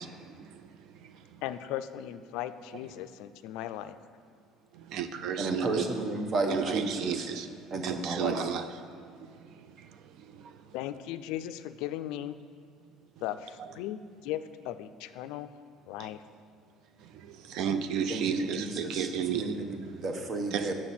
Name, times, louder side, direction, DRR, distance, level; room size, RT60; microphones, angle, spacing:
voice 1, 0.0-1.4 4.7-5.9 6.5-10.7 13.6-13.7 16.0-16.1 17.0-20.1 20.5-20.7, right 8 dB, 65° right, 10 dB, 0.4 m, -35 dB
voice 2, 1.4-4.0 10.7-12.4 13.2-15.5 15.9-16.2, left 12 dB, 80° left, 11 dB, 0.3 m, -37 dB
voice 3, 5.4-7.3 7.7-8.4 18.1-20.7, right 2 dB, 35° right, 4 dB, 0.9 m, -32 dB
7.7 x 6.3 x 4.2 m, 2.3 s
cardioid pair, 125°, 0 cm